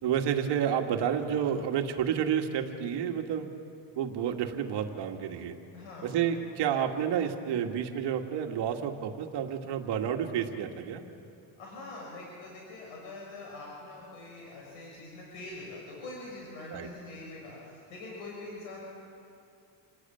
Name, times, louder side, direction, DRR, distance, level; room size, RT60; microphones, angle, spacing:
voice 1, 0.0-3.5 4.0-5.6 6.0-11.0 16.7-16.9, right 8 dB, 55° right, 4 dB, 2.1 m, -30 dB
voice 2, 5.7-6.2 11.6-18.8, left 2 dB, 80° left, -2 dB, 6.6 m, -44 dB
28.0 x 18.0 x 9.2 m, 2.5 s
cardioid pair, 150°, 48 cm